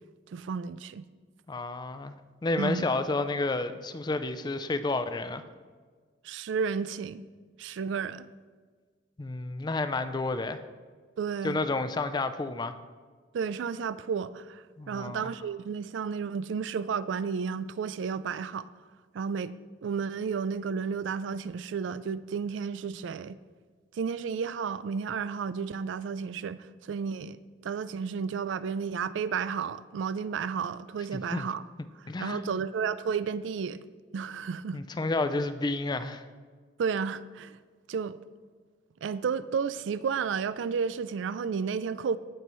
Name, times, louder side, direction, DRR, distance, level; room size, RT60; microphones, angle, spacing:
voice 1, 0.3-1.0 2.6-2.8 6.2-7.2 7.6-8.3 11.2-11.6 13.3-18.7 19.1-19.6 19.8-23.4 23.9-27.4 27.6-31.6 32.2-33.8 34.1-34.8 36.8-37.6 37.9-38.2 39.0-42.2, right 6 dB, 80° right, 0.3 m, -32 dB
voice 2, 1.5-2.1 2.4-5.4 9.2-10.6 11.4-12.8 14.8-15.3 31.1-31.5 32.1-32.5 34.7-36.3, left 2 dB, 25° left, 0.4 m, -30 dB
15.5 x 5.5 x 3.1 m
head